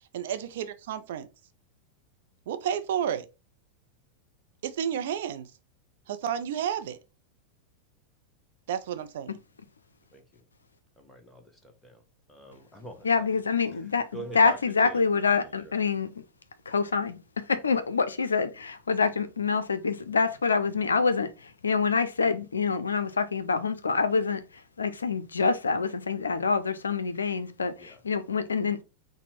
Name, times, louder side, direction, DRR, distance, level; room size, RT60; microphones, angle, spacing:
voice 1, 0.1-1.3 2.5-3.3 4.6-5.5 6.1-7.0 8.7-9.4, right 9 dB, 55° right, 0.4 m, -31 dB
voice 2, 11.0-12.0 12.3-12.9 13.7-13.9 14.1-14.6 14.8-15.1 15.4-15.7 27.8-28.0, right 2 dB, 5° left, 1.0 m, -44 dB
voice 3, 13.0-16.1 16.7-24.4 24.8-28.8, left 5 dB, 75° left, 0.4 m, -26 dB
4.1 x 2.1 x 4.3 m
figure-of-eight pair, 90°, 0 cm